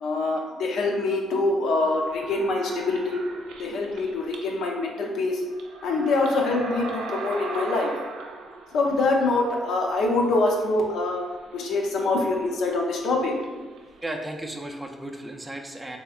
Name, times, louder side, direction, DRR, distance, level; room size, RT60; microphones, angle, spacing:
voice 1, 0.0-3.2 3.6-5.4 5.8-7.9 8.7-11.2 11.5-13.3, left 2 dB, 75° left, 1 dB, 0.5 m, -24 dB
sound 1, 2.0-4.6 5.0-5.1 5.4-14.1, right 3 dB, 85° right, 0.4 m, -40 dB
voice 2, 14.0-16.0, right 1 dB, 15° right, 2 dB, 0.4 m, -35 dB
3.3 x 2.7 x 2.4 m, 1.3 s
cardioid pair, 90°, 0 cm